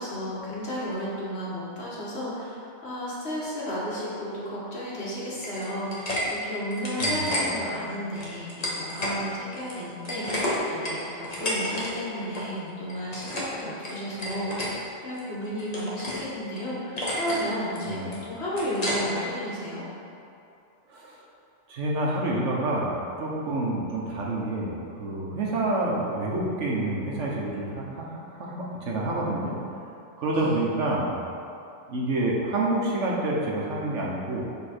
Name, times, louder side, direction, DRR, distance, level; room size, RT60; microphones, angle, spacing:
voice 1, 0.0-19.8 30.3-30.6, equal, 60° left, -7 dB, 1.6 m, -33 dB
sound 1, 5.4-6.2 6.6-7.5 8.2-9.2 9.5-11.9 12.2-12.5 12.9-13.5 13.8-14.7 15.1-16.2 16.6-16.7 17.0-17.4 17.8-19.2, equal, 35° left, 1.1 m, -31 dB
voice 2, 7.0-7.4 17.8-18.1 20.9-21.2 21.7-29.6 30.2-31.1 31.9-34.4, right 2 dB, 80° right, -3 dB, 1.3 m, -28 dB
7.0 x 3.8 x 4.3 m, 2.7 s
omnidirectional pair, 1.2 m